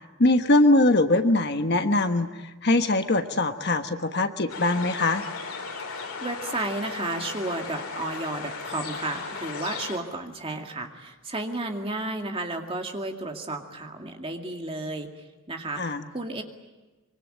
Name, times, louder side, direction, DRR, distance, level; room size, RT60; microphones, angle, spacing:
voice 1, 0.2-2.3 2.6-5.2 15.8-16.0, left 2 dB, 50° left, 8 dB, 1.3 m, -22 dB
sound 1, 4.5-10.0, left 4 dB, 85° left, 3.9 m, -36 dB
voice 2, 5.9-15.1 15.5-16.4, right 2 dB, 25° right, 3 dB, 2.3 m, -33 dB
25.0 x 23.5 x 8.9 m, 1.2 s
head